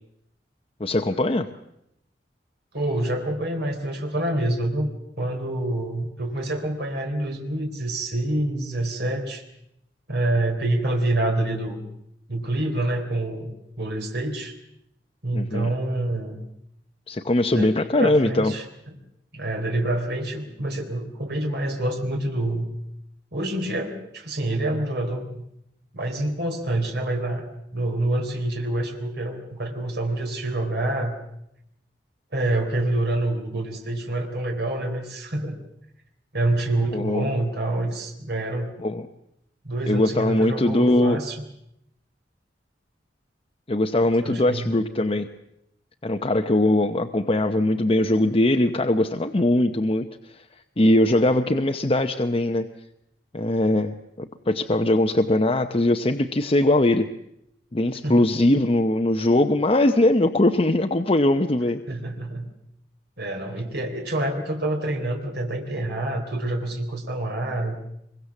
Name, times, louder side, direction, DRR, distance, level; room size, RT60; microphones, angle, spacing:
voice 1, 0.8-1.5 15.3-15.7 17.1-18.5 36.9-37.3 38.8-39.0 39.9-41.2 43.7-45.3 46.0-50.4 50.8-52.7 53.3-57.1 57.7-61.8, left 1 dB, 30° left, 5 dB, 0.9 m, -21 dB
voice 2, 2.7-4.9 5.2-9.4 10.1-11.8 12.3-14.5 15.2-16.4 17.5-17.7 18.0-18.7 19.3-22.7 23.3-25.4 25.9-27.5 27.7-31.2 32.3-35.6 36.3-38.7 39.6-41.4 44.1-44.7 58.0-58.3 61.9-62.5 63.2-67.8, right 1 dB, 65° right, 3 dB, 3.9 m, -27 dB
24.5 x 23.0 x 7.2 m, 0.80 s
head